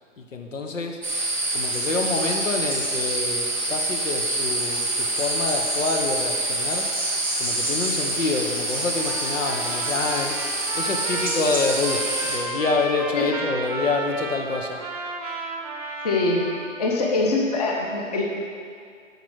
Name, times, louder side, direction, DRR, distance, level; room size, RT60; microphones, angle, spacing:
voice 1, 0.2-1.0 1.5-6.9 7.4-10.4 10.7-14.8, left 3 dB, 70° left, 3 dB, 1.3 m, -27 dB
sound 1, 1.0-12.4, right 1 dB, 10° left, 0.6 m, -26 dB
Trumpet, 8.9-16.9, right 3 dB, 30° right, 0.8 m, -33 dB
voice 2, 16.0-16.4 16.8-18.2, left 3 dB, 30° left, -1 dB, 1.2 m, -23 dB
12.0 x 5.2 x 6.3 m, 2.3 s
hypercardioid pair, 160°, 40 cm